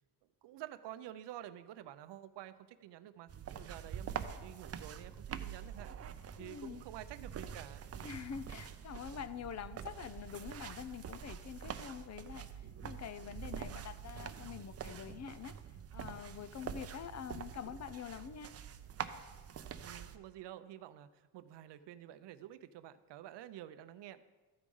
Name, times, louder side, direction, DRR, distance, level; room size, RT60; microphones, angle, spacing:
voice 1, 0.4-5.9 6.4-8.1 19.8-24.2, right 12 dB, 80° right, 12 dB, 0.6 m, -50 dB
sound 1, 3.3-20.2, right 8 dB, 35° right, 0.5 m, -46 dB
voice 2, 6.4-6.8 8.0-15.6 15.9-18.5, left 8 dB, 40° left, 12 dB, 0.4 m, -46 dB
13.5 x 4.9 x 5.4 m, 1.3 s
cardioid pair, 130°, 41 cm